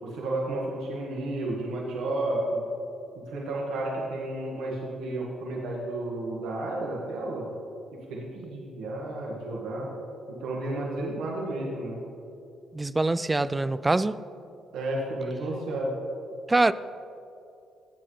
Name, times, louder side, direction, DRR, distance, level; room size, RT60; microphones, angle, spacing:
voice 1, 0.0-2.6 3.1-7.5 7.9-9.9 10.3-12.0 14.7-16.0, right 1 dB, 85° right, -3 dB, 1.6 m, -32 dB
voice 2, 12.7-14.2 16.5-16.7, right 2 dB, 20° right, 16 dB, 0.3 m, -24 dB
16.0 x 7.7 x 3.3 m, 2.7 s
cardioid pair, 90°, 0 cm